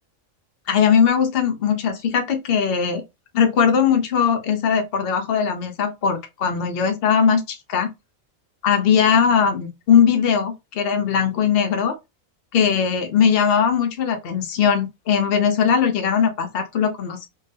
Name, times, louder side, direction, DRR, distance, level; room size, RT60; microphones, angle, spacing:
voice 1, 0.7-3.0 3.3-7.9 8.6-12.0 12.5-17.3, left 7 dB, 50° left, 0.9 m, -19 dB
3.6 x 2.7 x 3.5 m
omnidirectional pair, 1.4 m